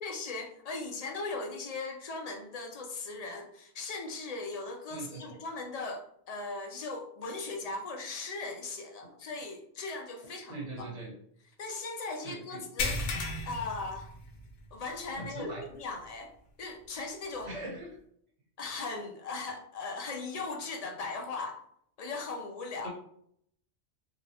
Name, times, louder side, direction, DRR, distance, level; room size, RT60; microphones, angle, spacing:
voice 1, 0.0-10.9 11.6-13.0 13.5-14.1 14.7-16.3 16.6-17.6 18.6-21.6 22.0-22.9, left 3 dB, 60° left, 3 dB, 0.4 m, -38 dB
voice 2, 4.9-5.3 10.5-11.1 12.2-12.7 13.0-13.2 15.1-15.7 17.5-17.9 22.8-22.9, right 2 dB, 40° right, -2 dB, 1.0 m, -41 dB
sound 1, 12.8-14.7 15.0-15.2 15.7-15.8 17.5-17.6, left 2 dB, 90° left, 0.9 m, -34 dB
3.9 x 2.0 x 2.7 m, 0.68 s
omnidirectional pair, 1.2 m